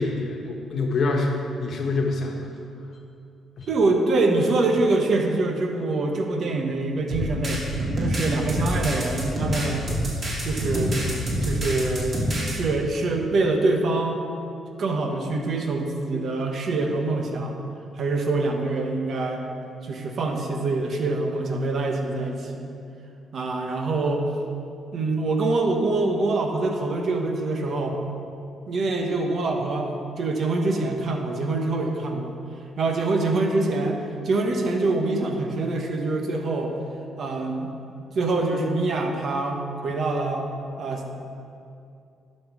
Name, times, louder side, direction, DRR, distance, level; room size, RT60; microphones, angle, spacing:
voice 1, 0.0-1.3 1.6-2.4 3.6-3.7, left 3 dB, 55° left, 1 dB, 1.2 m, -25 dB
voice 2, 3.7-9.9 10.4-11.0 11.4-14.2 14.8-17.6 18.0-19.4 19.8-22.7 23.3-24.3 24.9-28.0 28.7-29.9 30.2-32.3 32.8-36.8 37.2-37.7 38.1-40.5 40.8-41.2, right 2 dB, 55° right, 3 dB, 1.1 m, -25 dB
sound 1, 7.1-12.5, equal, 40° right, 2.2 m, -27 dB
11.0 x 5.6 x 4.8 m, 2.5 s
cardioid pair, 90°, 0 cm